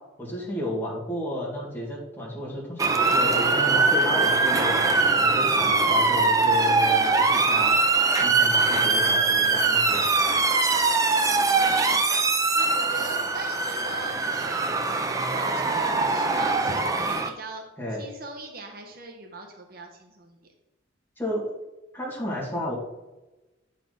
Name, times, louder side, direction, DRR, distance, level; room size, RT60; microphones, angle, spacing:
voice 1, 0.2-4.8 5.2-7.9 8.2-10.0 17.8-18.0 21.2-21.4 21.9-22.7, left 1 dB, 10° left, -6 dB, 2.1 m, -32 dB
Motor vehicle (road) / Siren, 2.8-17.3, right 3 dB, 15° right, 0.4 m, -22 dB
voice 2, 11.3-12.0 12.6-14.6 15.3-17.6 17.9-20.4, right 2 dB, 45° right, 3 dB, 0.8 m, -40 dB
8.9 x 4.2 x 5.1 m, 1.1 s
head